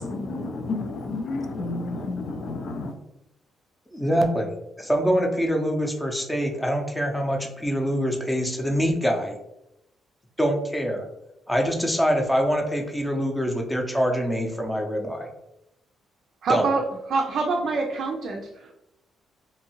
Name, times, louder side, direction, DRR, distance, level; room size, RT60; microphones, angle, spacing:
voice 1, 0.0-2.9, left 3 dB, 60° left, 6 dB, 0.4 m, -31 dB
voice 2, 3.9-4.5 4.8-9.4 10.4-11.0 11.5-15.3 16.5-16.6, equal, 5° left, 2 dB, 0.6 m, -24 dB
voice 3, 16.4-18.8, right 4 dB, 65° right, 0 dB, 0.4 m, -26 dB
2.7 x 2.5 x 2.9 m, 0.85 s
cardioid pair, 90°, 0 cm